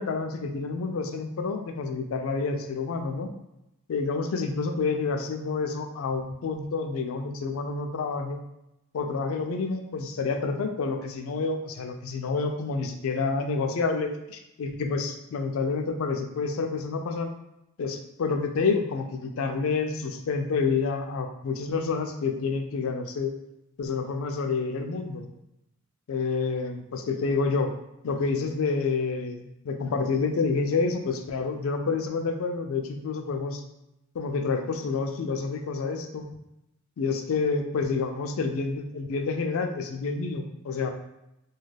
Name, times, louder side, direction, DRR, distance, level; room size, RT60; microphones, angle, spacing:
voice 1, 0.0-3.3 3.9-8.4 8.9-17.3 17.8-23.3 23.8-25.3 26.1-27.7 28.0-33.6 34.1-36.4 37.0-40.9, left 4 dB, 70° left, 5 dB, 0.4 m, -28 dB
2.3 x 2.2 x 3.2 m, 0.86 s
head